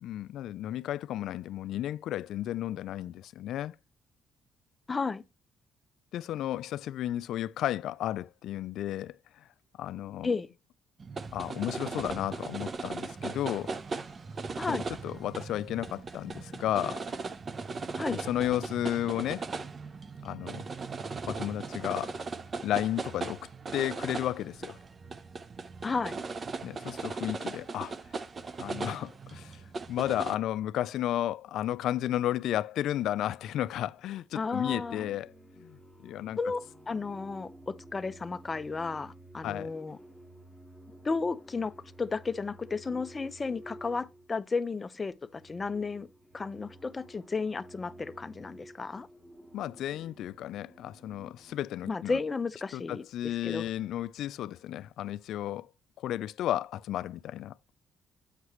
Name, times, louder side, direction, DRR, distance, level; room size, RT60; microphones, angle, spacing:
voice 1, 0.0-3.8 6.1-9.4 9.8-10.3 11.3-13.7 14.7-17.0 18.1-19.5 20.2-20.6 21.3-22.1 22.6-24.8 26.6-28.0 28.6-36.4 39.4-39.7 49.5-52.2 52.7-55.7 56.0-57.5, left 12 dB, 80° left, 0.3 m, -33 dB
voice 2, 4.9-5.2 10.2-10.5 14.6-14.8 18.0-18.2 25.8-26.2 34.4-35.1 36.4-40.0 41.0-41.7 42.0-46.1 46.3-49.1 51.9-53.6, left 4 dB, 30° left, 0.6 m, -33 dB
sound 1, 11.0-30.4, right 4 dB, 40° right, 0.7 m, -38 dB
sound 2, 33.8-34.1 34.5-44.6 45.1-51.7, right 1 dB, ahead, 1.9 m, -52 dB
8.0 x 5.8 x 3.1 m
cardioid pair, 90°, 0 cm